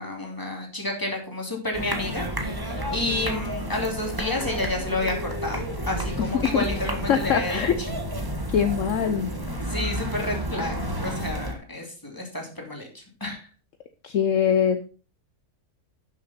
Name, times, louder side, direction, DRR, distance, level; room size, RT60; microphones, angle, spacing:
voice 1, 0.0-7.9 9.7-13.5, left 2 dB, 15° left, 1 dB, 2.8 m, -30 dB
sound 1, 1.7-11.5, equal, 15° right, 1.5 m, -31 dB
voice 2, 6.2-6.6 7.1-7.8 8.5-9.3 14.0-14.9, left 8 dB, 60° left, 9 dB, 1.1 m, -23 dB
11.5 x 7.1 x 4.3 m, 0.36 s
omnidirectional pair, 1.6 m